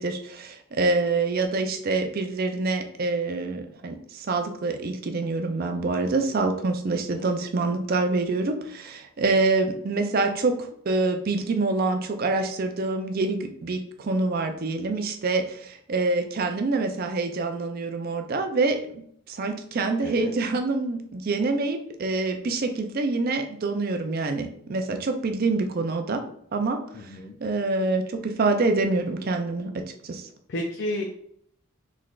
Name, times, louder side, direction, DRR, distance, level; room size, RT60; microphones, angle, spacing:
voice 1, 0.0-19.0 19.3-26.2 26.5-30.3, right 3 dB, 45° right, 6 dB, 0.4 m, -26 dB
voice 2, 20.0-20.3 26.9-27.4 30.5-31.0, left 1 dB, 50° left, 1 dB, 0.4 m, -32 dB
3.9 x 3.2 x 2.4 m, 0.67 s
head